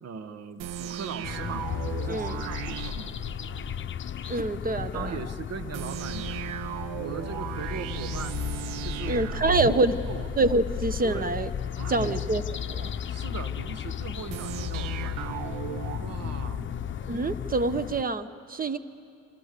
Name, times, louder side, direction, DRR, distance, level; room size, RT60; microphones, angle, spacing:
voice 1, 0.0-3.1 4.9-6.4 7.0-8.4 8.8-9.7 10.1-10.3 11.0-11.3 11.7-12.2 13.1-15.6 16.0-16.7, right 6 dB, 50° right, 11 dB, 1.5 m, -39 dB
sound 1, 0.6-3.9 5.7-10.9 14.3-16.9, right 11 dB, 75° right, 1.0 m, -36 dB
sound 2, 1.2-18.0, left 9 dB, 35° left, 0.8 m, -34 dB
voice 2, 2.1-2.4 4.2-5.2 9.1-10.0 10.4-11.5 11.9-12.4 12.7-12.9 17.1-18.8, right 2 dB, 25° right, 13 dB, 1.3 m, -26 dB
27.0 x 26.5 x 6.9 m, 2.5 s
supercardioid pair, 70°, 32 cm